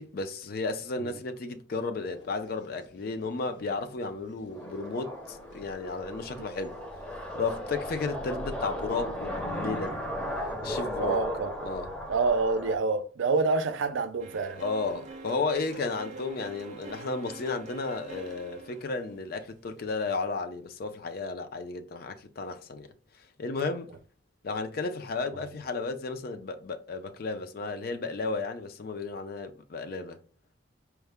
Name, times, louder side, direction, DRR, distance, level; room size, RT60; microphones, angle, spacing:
voice 1, 0.0-6.8 7.3-10.0 10.6-11.2 11.6-11.9 14.6-22.9 23.4-23.9 24.4-30.2, left 3 dB, 50° left, 0.4 m, -33 dB
sound 1, 2.0-10.6, left 2 dB, 70° left, 1.0 m, -56 dB
sound 2, 4.5-12.8, left 1 dB, 5° left, 0.6 m, -36 dB
voice 2, 11.0-11.5 12.1-14.6 25.4-25.5, right 4 dB, 85° right, 0.4 m, -27 dB
sound 3, 14.2-20.0, right 3 dB, 40° right, 0.6 m, -45 dB
4.6 x 2.1 x 3.4 m
head